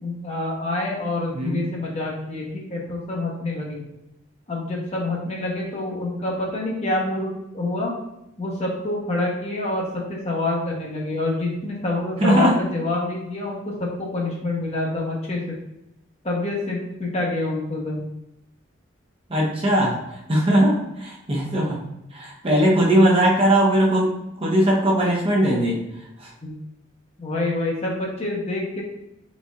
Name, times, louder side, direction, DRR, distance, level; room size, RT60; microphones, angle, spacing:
voice 1, 0.0-3.8 4.5-7.9 8.4-15.5 16.2-18.0 26.4-26.5 27.2-28.8, left 2 dB, 35° left, -2 dB, 0.9 m, -27 dB
voice 2, 12.2-12.5 19.3-20.0 20.3-21.8 22.1-25.8 26.2-26.3, right 1 dB, 30° right, -3 dB, 0.8 m, -19 dB
4.1 x 4.1 x 2.4 m, 0.85 s
head